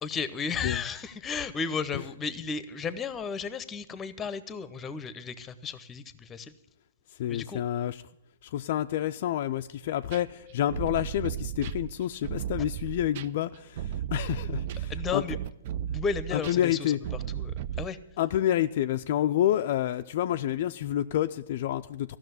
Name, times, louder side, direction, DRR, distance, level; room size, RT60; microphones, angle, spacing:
voice 1, 0.0-6.5 7.3-7.6 14.9-15.4 15.9-17.0 17.3-18.0, left 5 dB, 15° left, 15 dB, 0.7 m, -34 dB
voice 2, 7.2-8.0 8.4-15.2 16.3-17.0 18.2-22.2, left 12 dB, 50° left, 7 dB, 0.4 m, -28 dB
sound 1, 10.1-17.9, right 10 dB, 45° right, 0.4 m, -35 dB
14.0 x 6.2 x 9.4 m, 0.84 s
hypercardioid pair, 125°, 0 cm